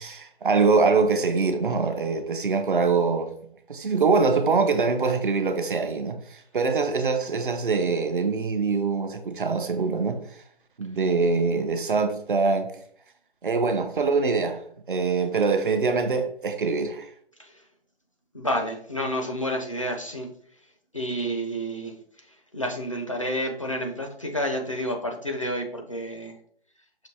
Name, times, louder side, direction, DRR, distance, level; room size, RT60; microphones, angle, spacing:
voice 1, 0.0-3.3 3.7-10.2 10.8-12.7 13.4-14.6 14.9-17.1, right 4 dB, 55° right, 0.6 m, -24 dB
voice 2, 18.3-20.3 20.9-22.0 22.5-26.4, equal, 35° left, 0.4 m, -29 dB
5.9 x 2.6 x 2.7 m
figure-of-eight pair, 145°, 31 cm